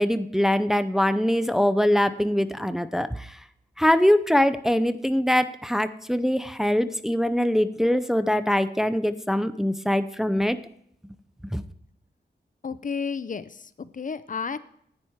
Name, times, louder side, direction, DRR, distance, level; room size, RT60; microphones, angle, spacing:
voice 1, 0.0-3.4 3.8-10.6 11.5-11.6, equal, ahead, 12 dB, 0.6 m, -23 dB
voice 2, 12.6-14.6, left 5 dB, 50° left, 14 dB, 0.6 m, -32 dB
11.0 x 8.8 x 4.6 m, 0.70 s
wide cardioid pair, 85°, 18 cm